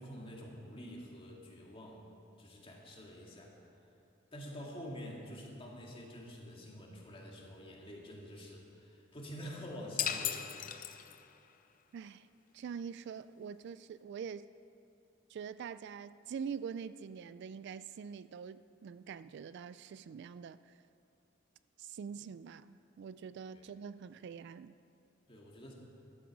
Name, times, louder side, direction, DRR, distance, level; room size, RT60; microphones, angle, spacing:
voice 1, 0.0-2.1 2.4-3.6 4.3-10.5 23.5-23.7 25.3-25.7, equal, 30° left, -2 dB, 2.1 m, -47 dB
sound 1, 10.0-11.5, left 9 dB, 45° left, 0.6 m, -36 dB
voice 2, 11.9-12.3 12.5-14.5 15.3-20.8 21.8-24.8, right 6 dB, 60° right, 14 dB, 0.3 m, -44 dB
14.5 x 12.0 x 4.8 m, 2.8 s
head